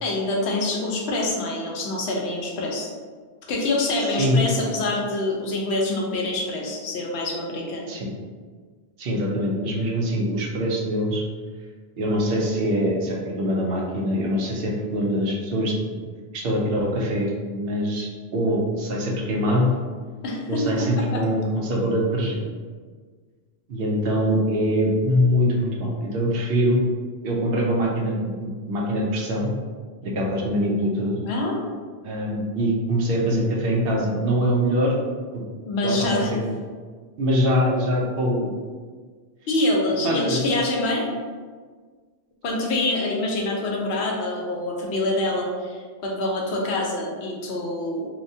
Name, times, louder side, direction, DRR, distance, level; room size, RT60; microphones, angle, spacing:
voice 1, 0.0-2.9 3.5-7.8 20.2-21.2 31.2-31.6 35.6-36.3 39.5-41.1 42.4-48.1, left 2 dB, 85° left, -1 dB, 0.9 m, -26 dB
voice 2, 9.0-11.2 12.0-16.0 16.3-19.7 20.5-22.5 23.7-26.8 27.2-29.5 30.0-31.2 32.0-35.0 35.3-35.4 35.8-36.1 37.2-38.6 40.0-40.4, equal, 70° right, -2 dB, 0.7 m, -23 dB
2.9 x 2.1 x 2.6 m, 1.6 s
omnidirectional pair, 1.1 m